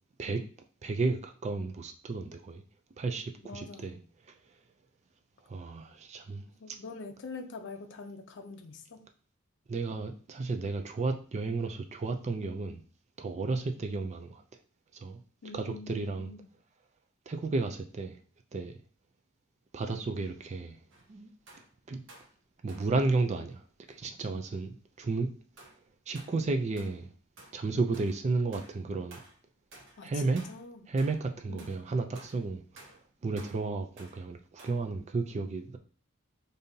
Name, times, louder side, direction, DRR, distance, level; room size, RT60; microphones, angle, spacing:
voice 1, 0.8-2.6 3.0-4.0 5.5-6.4 9.7-12.8 13.2-14.4 14.9-15.2 15.5-16.3 17.3-18.2 18.5-18.7 19.7-20.8 21.1-21.3 21.9-22.0 22.6-23.6 23.9-25.3 26.1-27.1 27.5-29.2 30.0-30.4 30.9-32.9 33.2-35.8, right 3 dB, 35° right, 0.4 m, -32 dB
voice 2, 3.4-4.0 6.4-9.0 15.4-16.4 30.0-30.9 31.5-31.7, left 4 dB, 60° left, 0.5 m, -45 dB
sound 1, 20.9-21.1 21.5-21.7 22.1-22.3 22.7-23.0 23.9-24.0 25.6-25.8 26.2-26.4 26.8-27.1 27.4-27.7 27.9-28.3 28.5-28.8 29.1-29.4 29.7-30.1 30.4-30.7 31.0-31.3 31.6-31.9 32.2-32.5 32.8-33.1 33.4-33.7 34.0-34.3 34.6-34.9, right 2 dB, 65° right, 0.9 m, -54 dB
5.2 x 2.7 x 2.7 m
head